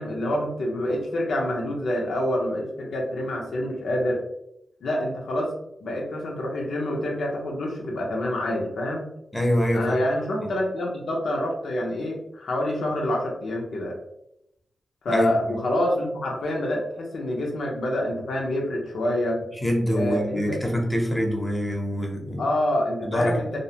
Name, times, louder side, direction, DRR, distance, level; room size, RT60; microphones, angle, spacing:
voice 1, 0.0-4.2 4.8-5.5 5.8-9.1 9.7-14.0 15.0-19.4 19.9-20.6 22.4-23.6, left 1 dB, 85° left, -1 dB, 0.5 m, -27 dB
voice 2, 9.3-10.0 10.4-10.5 15.1-15.6 19.6-22.4 23.0-23.6, equal, 10° left, 0 dB, 0.7 m, -25 dB
2.3 x 2.1 x 2.8 m, 0.80 s
cardioid pair, 60°, 0 cm